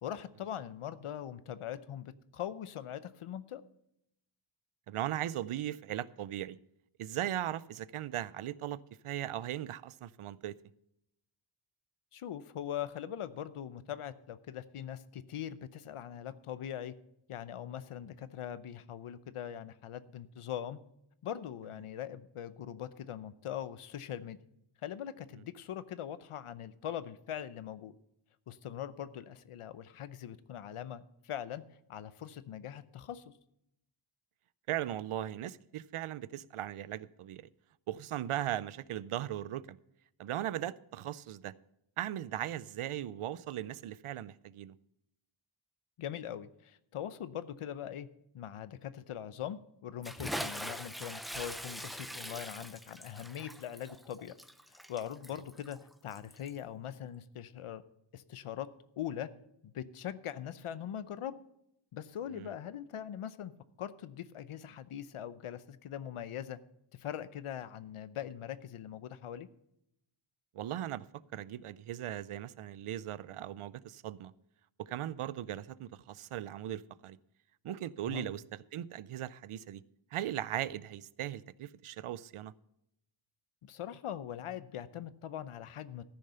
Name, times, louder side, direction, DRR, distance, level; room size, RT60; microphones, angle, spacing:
voice 1, 0.0-3.6 12.1-16.9 17.3-20.8 21.2-24.4 24.8-27.9 28.5-31.6 31.9-33.3 46.0-48.1 48.3-54.3 54.7-57.8 58.1-58.7 59.0-59.3 59.6-61.3 61.9-63.5 63.8-66.6 66.9-69.5 78.1-78.3 83.6-86.0, left 10 dB, 85° left, 0.8 m, -41 dB
voice 2, 4.9-6.6 7.0-8.8 9.0-10.5 34.7-37.5 37.9-39.8 40.2-41.5 42.0-44.7 62.3-62.5 70.5-71.1 71.3-74.3 74.8-77.2 77.6-79.8 80.1-82.5, right 12 dB, 80° right, 0.6 m, -38 dB
Bathtub (filling or washing) / Splash splatter, 50.0-56.6, equal, ahead, 0.5 m, -42 dB
14.5 x 6.6 x 5.6 m
wide cardioid pair, 150°, 50 cm